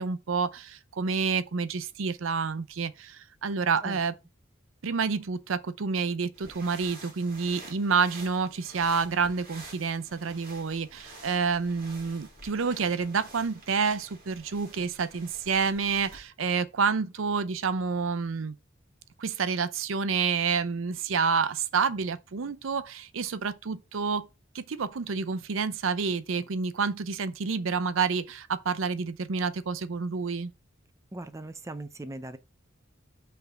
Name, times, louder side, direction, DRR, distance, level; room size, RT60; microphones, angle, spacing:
voice 1, 0.0-4.1 4.8-18.5 19.2-24.3 24.5-30.5, right 5 dB, 80° right, 0.6 m, -29 dB
sound 1, 6.3-16.2, right 2 dB, 50° right, 2.7 m, -49 dB
voice 2, 31.1-32.4, right 2 dB, 15° right, 0.5 m, -39 dB
5.9 x 3.4 x 5.7 m
head